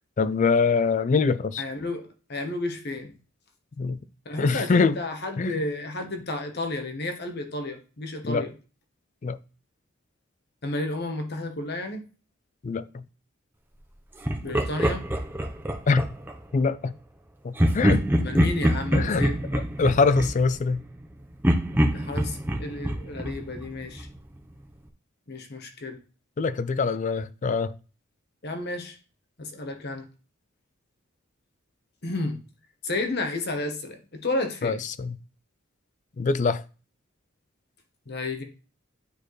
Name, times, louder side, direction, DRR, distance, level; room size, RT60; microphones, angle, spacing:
voice 1, 0.2-1.6 3.8-4.0 4.4-5.0 5.4-5.6 8.2-8.5 9.2-9.4 12.6-13.0 15.9-16.1 16.5-16.9 17.4-18.0 18.9-19.2 19.5-20.8 26.4-27.7 34.6-35.2 36.2-36.6, left 4 dB, 35° left, 0.4 m, -24 dB
voice 2, 1.6-3.1 4.2-8.5 10.6-12.0 14.4-15.0 18.1-19.3 21.9-24.1 25.3-26.0 28.4-29.0 29.4-30.0 32.0-32.4 32.8-34.8 38.1-38.4, left 2 dB, 50° left, 1.1 m, -32 dB
Laughter, 14.2-16.4 17.6-21.1 21.4-24.2, equal, 10° right, 0.7 m, -25 dB
9.4 x 4.3 x 3.2 m
head